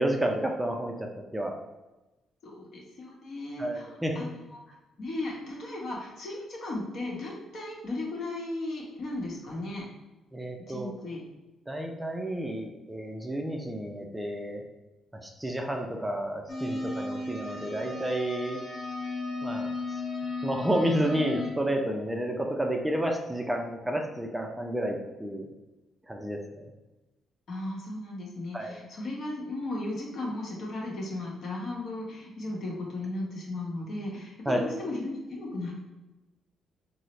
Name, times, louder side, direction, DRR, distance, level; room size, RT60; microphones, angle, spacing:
voice 1, 0.0-1.5 3.6-4.3 10.3-10.9 11.7-14.6 15.1-18.6 19.4-20.0 20.4-25.5 26.1-26.7 28.5-28.8 34.5-34.6, right 1 dB, 10° right, 2 dB, 0.4 m, -31 dB
voice 2, 2.4-4.4 4.7-9.8 10.7-11.2 27.5-35.7, left 2 dB, 60° left, -3 dB, 1.0 m, -36 dB
sound 1, 16.5-21.5, left 2 dB, 40° left, 1.0 m, -35 dB
3.9 x 2.0 x 3.0 m, 1.1 s
cardioid pair, 90°, 0 cm